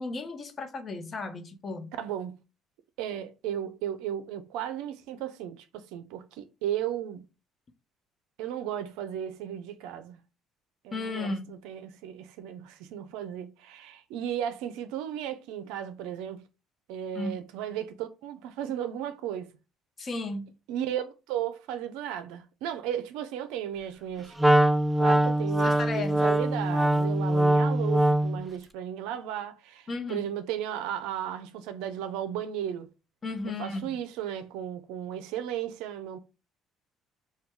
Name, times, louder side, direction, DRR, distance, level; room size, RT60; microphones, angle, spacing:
voice 1, 0.0-1.9 10.9-11.6 17.2-17.4 20.0-20.5 25.2-25.3 25.6-26.3 29.9-30.3 33.2-33.9, left 3 dB, 40° left, 0.7 m, -34 dB
voice 2, 2.0-2.4 3.0-7.2 8.4-10.2 10.8-16.4 16.9-19.5 20.7-24.4 25.0-32.9 33.4-36.2, right 10 dB, 85° right, 0.4 m, -35 dB
Wind instrument woodwind instrument, 24.4-28.4, right 1 dB, 10° right, 0.3 m, -23 dB
3.0 x 2.2 x 3.4 m
supercardioid pair, 75°, 0 cm